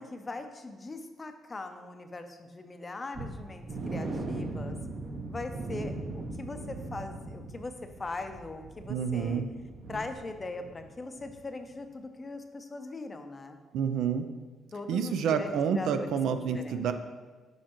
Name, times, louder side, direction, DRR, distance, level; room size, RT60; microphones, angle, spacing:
voice 1, 0.0-4.8 5.3-9.4 9.9-13.6 14.7-16.9, left 3 dB, 30° left, 7 dB, 0.5 m, -41 dB
sound 1, 3.1-10.9 11.2-11.4 11.8-11.9, right 2 dB, 50° right, 0.7 m, -39 dB
voice 2, 8.9-9.5 13.7-14.3 14.9-16.9, right 7 dB, 80° right, 8 dB, 0.4 m, -28 dB
6.3 x 5.1 x 3.0 m, 1.3 s
cardioid pair, 90°, 0 cm